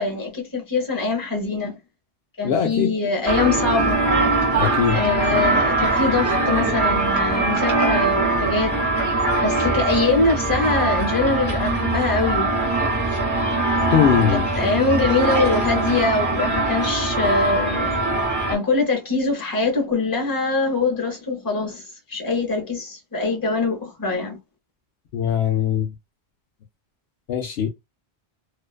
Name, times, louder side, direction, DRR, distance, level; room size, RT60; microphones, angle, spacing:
voice 1, 0.0-1.8 2.4-4.0 4.9-8.8 9.4-12.9 14.6-17.9 18.5-24.4, left 3 dB, 20° left, 0.8 m, -23 dB
voice 2, 2.4-2.9 4.6-5.0 13.9-14.5 25.1-25.9 27.3-27.7, left 8 dB, 70° left, 0.8 m, -20 dB
sound 1, 3.3-18.6, right 2 dB, 20° right, 0.8 m, -22 dB
2.5 x 2.2 x 2.3 m
omnidirectional pair, 1.1 m